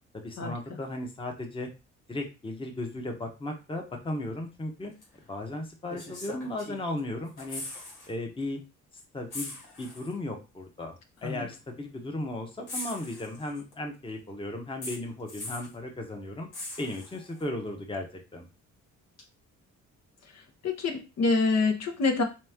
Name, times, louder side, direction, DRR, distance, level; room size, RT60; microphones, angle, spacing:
voice 1, 0.1-1.7 2.1-7.6 8.1-8.6 9.1-16.5 16.8-18.5, left 1 dB, 15° left, 2 dB, 0.9 m, -36 dB
sound 1, 5.0-5.1 5.9-7.0 7.3-8.1 8.4-8.6 9.3-10.2 11.2-11.3 12.7-13.7 14.8-15.8 16.5-17.4 19.2-19.3, left 2 dB, 85° left, 1.9 m, -41 dB
voice 2, 20.6-22.2, left 3 dB, 60° left, 2 dB, 0.9 m, -26 dB
3.5 x 3.1 x 3.5 m, 0.29 s
cardioid pair, 90°, 30 cm